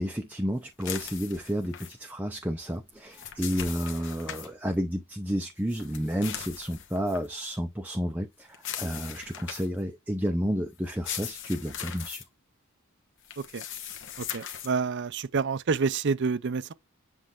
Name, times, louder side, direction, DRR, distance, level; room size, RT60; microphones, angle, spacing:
voice 1, 0.0-12.2, equal, 5° right, 0.6 m, -31 dB
sound 1, 0.8-1.9 2.9-4.5 5.7-7.3 8.5-9.8 10.8-12.2 13.2-14.7, left 9 dB, 55° left, 1.2 m, -39 dB
voice 2, 14.2-16.7, right 5 dB, 55° right, 0.5 m, -28 dB
7.6 x 3.3 x 3.6 m
head